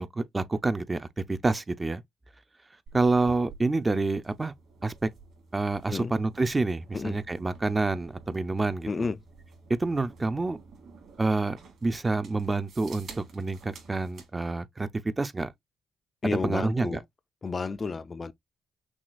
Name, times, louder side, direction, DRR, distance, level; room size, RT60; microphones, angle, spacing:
voice 1, 0.0-2.0 2.9-4.5 4.8-5.1 5.5-9.1 9.7-10.6 11.2-14.9 15.2-15.5 16.2-17.0, right 3 dB, 20° right, 0.5 m, -28 dB
sound 1, 2.9-14.3, right 4 dB, 60° right, 2.4 m, -50 dB
voice 2, 8.9-9.2 16.2-17.0 17.4-18.3, left 4 dB, 30° left, 0.4 m, -31 dB
6.1 x 2.3 x 2.3 m
cardioid pair, 90°, 0 cm